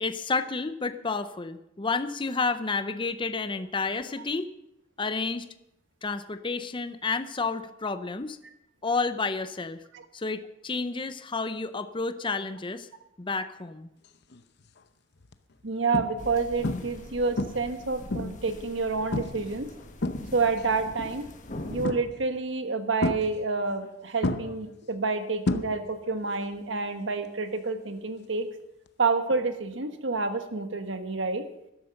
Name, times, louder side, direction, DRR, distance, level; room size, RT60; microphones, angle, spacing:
voice 1, 0.0-4.5 5.0-5.5 6.0-8.4 8.8-9.8 10.1-12.9 13.2-13.9, left 4 dB, 25° left, 11 dB, 0.6 m, -30 dB
sound 1, 14.3-14.6 15.2-15.3 15.9-16.4 16.6-17.0 17.4-18.5 19.1-19.5 19.8-20.6 21.8-22.4 23.0-23.9 24.2-26.1 26.4-26.8 28.9-29.0, left 2 dB, 55° left, 0.8 m, -31 dB
voice 2, 15.6-19.7 20.3-21.3 21.7-28.5 29.0-31.4, right 4 dB, 65° right, 8 dB, 1.5 m, -28 dB
sound 2, 16.2-21.9, left 1 dB, 40° left, 1.5 m, -42 dB
13.0 x 12.0 x 6.5 m, 0.87 s
head